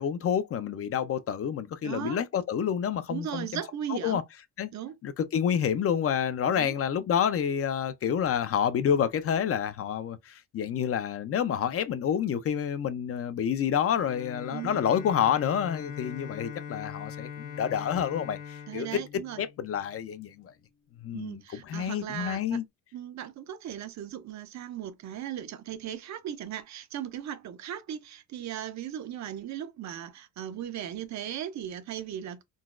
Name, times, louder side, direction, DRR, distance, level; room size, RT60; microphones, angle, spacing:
voice 1, 0.0-3.5 3.9-4.2 4.6-4.7 5.0-18.9 19.4-20.5 21.0-21.4 21.7-22.6, left 8 dB, 45° left, 0.4 m, -28 dB
voice 2, 1.8-2.2 3.1-4.2 4.7-5.0 6.5-6.7 14.5-14.8 18.7-19.4 21.1-22.6 22.9-32.4, right 10 dB, 55° right, 0.5 m, -37 dB
Bowed string instrument, 13.9-20.0, left 7 dB, 75° left, 0.9 m, -42 dB
3.8 x 2.2 x 2.4 m
cardioid pair, 125°, 33 cm